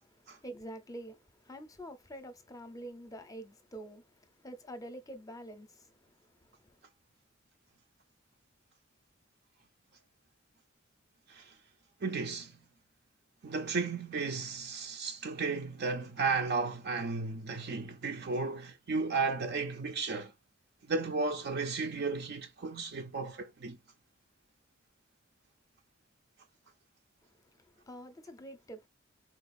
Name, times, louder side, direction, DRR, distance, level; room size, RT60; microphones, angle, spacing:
voice 1, 0.0-6.8 27.2-28.9, right 1 dB, 20° left, 0.6 m, -47 dB
voice 2, 12.0-12.5 13.4-20.3 20.9-23.8, right 4 dB, 60° right, 0.5 m, -34 dB
4.0 x 2.4 x 2.5 m
head